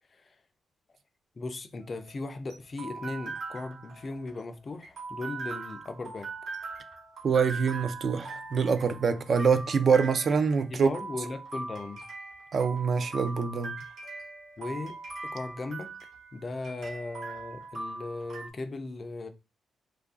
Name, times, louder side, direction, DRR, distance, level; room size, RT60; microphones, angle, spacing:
voice 1, 1.4-6.3 10.7-12.0 14.6-15.9 16.3-19.3, left 3 dB, 30° left, 0.3 m, -37 dB
sound 1, 1.8-18.5, right 3 dB, 70° right, 1.2 m, -41 dB
voice 2, 7.2-10.9 12.5-13.7, right 5 dB, 45° right, 0.3 m, -25 dB
3.0 x 2.4 x 3.6 m
wide cardioid pair, 160°, 0 cm